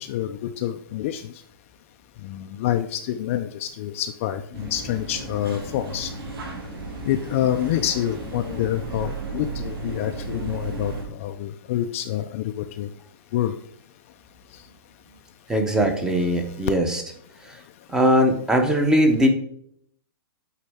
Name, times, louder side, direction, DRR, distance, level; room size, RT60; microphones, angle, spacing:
voice 1, 0.0-1.3 2.2-6.1 7.0-12.9 13.3-13.5 14.5-14.6, left 11 dB, 35° left, 7 dB, 0.4 m, -27 dB
sound 1, 4.5-11.0, right 3 dB, 70° right, 2.7 m, -34 dB
voice 2, 15.5-17.0 17.9-19.3, equal, 5° right, 5 dB, 0.7 m, -20 dB
8.3 x 4.0 x 3.4 m, 0.68 s
hypercardioid pair, 165°, 13 cm